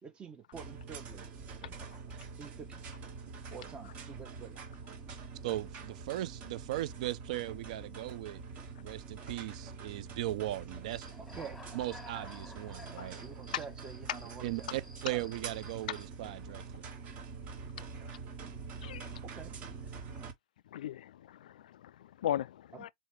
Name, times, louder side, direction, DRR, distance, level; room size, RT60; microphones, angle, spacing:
voice 1, 0.0-1.3 1.6-1.7 2.4-2.8 3.5-4.6 11.2-11.6 13.2-14.8 15.1-15.2 19.3-19.6 22.7-22.9, right 6 dB, 20° right, 0.9 m, -48 dB
sound 1, 0.5-20.3, right 5 dB, 40° right, 1.6 m, -46 dB
voice 2, 5.4-8.4 8.8-11.1 11.7-13.2 14.4-16.8, right 15 dB, 65° right, 0.5 m, -38 dB
Human voice / Cricket, 10.9-16.1, left 2 dB, ahead, 1.3 m, -53 dB
voice 3, 20.7-22.9, left 11 dB, 80° left, 0.4 m, -38 dB
4.3 x 3.0 x 3.3 m
hypercardioid pair, 125°, 4 cm